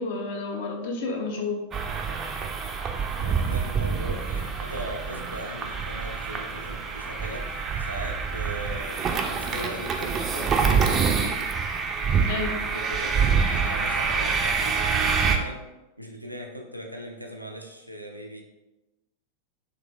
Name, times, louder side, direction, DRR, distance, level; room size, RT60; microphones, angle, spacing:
voice 1, 0.0-1.7 12.2-12.6, left 3 dB, 55° left, 2 dB, 0.6 m, -30 dB
sound 1, 1.7-15.4, right 5 dB, 25° right, 0.4 m, -26 dB
voice 2, 3.2-11.2 12.6-15.7 16.0-18.4, equal, 90° right, 2 dB, 0.4 m, -39 dB
3.6 x 3.0 x 2.3 m, 1.0 s
figure-of-eight pair, 90°, 0 cm